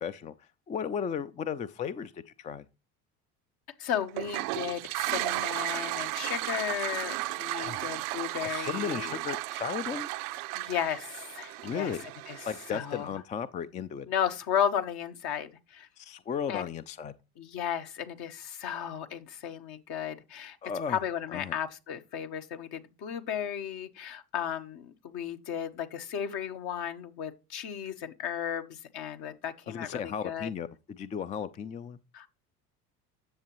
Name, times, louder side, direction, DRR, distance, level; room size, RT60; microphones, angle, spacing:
voice 1, 0.0-2.7 7.6-7.9 8.4-10.1 11.6-12.0 12.5-14.1 16.0-17.1 20.6-21.0 21.3-21.5 29.7-32.0, left 7 dB, 20° left, 0.3 m, -35 dB
voice 2, 3.8-9.2 10.5-11.9 12.3-13.2 14.1-15.9 16.5-16.7 17.4-20.6 20.9-30.5 32.1-32.3, left 9 dB, 55° left, 1.2 m, -34 dB
Toilet flush, 4.1-13.0, right 19 dB, 70° right, 0.6 m, -34 dB
10.0 x 7.0 x 3.0 m
hypercardioid pair, 70°, 45 cm